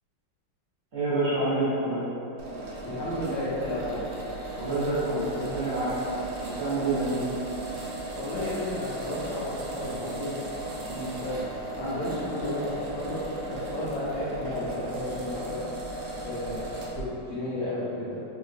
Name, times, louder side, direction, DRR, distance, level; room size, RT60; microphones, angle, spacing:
voice 1, 0.9-2.1 4.6-6.0 6.4-7.3 10.9-11.1, right 2 dB, 50° right, -12 dB, 0.8 m, -28 dB
sound 1, 2.4-17.0, right 2 dB, 75° right, 1.3 m, -36 dB
voice 2, 2.8-4.0 8.1-10.4 11.2-11.4 11.7-15.6 16.0-16.6 16.9-18.2, left 1 dB, 85° left, -13 dB, 1.5 m, -33 dB
4.6 x 2.1 x 2.5 m, 2.8 s
omnidirectional pair, 2.2 m